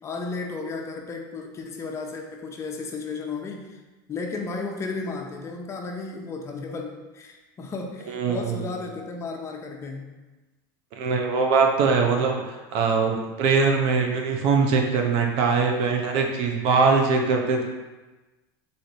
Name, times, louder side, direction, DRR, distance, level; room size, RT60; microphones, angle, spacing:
voice 1, 0.0-3.8 4.1-10.1, left 3 dB, 25° left, 1 dB, 0.7 m, -34 dB
voice 2, 8.1-8.7 10.9-17.7, right 4 dB, 60° right, 2 dB, 0.6 m, -22 dB
4.0 x 3.3 x 4.1 m, 1.2 s
supercardioid pair, 120°, 11 cm